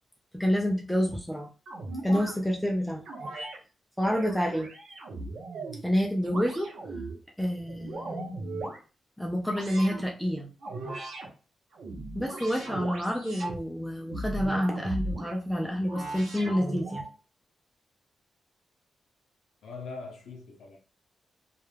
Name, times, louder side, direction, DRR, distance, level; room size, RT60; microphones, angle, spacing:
voice 1, 0.3-1.5 2.0-3.0 4.0-4.7 5.8-6.8 7.4-8.7 9.2-10.5 12.1-17.0, equal, ahead, 0.3 m, -28 dB
sound 1, 1.7-2.3 3.1-3.6 4.0-5.8 6.2-7.1 7.6-8.8 9.5-10.0 10.6-11.3 11.7-13.6 14.1-15.3 15.9-17.1, right 2 dB, 75° right, 0.7 m, -37 dB
voice 2, 19.6-20.8, left 4 dB, 80° left, 0.5 m, -41 dB
2.3 x 2.1 x 3.2 m
wide cardioid pair, 175°, 0 cm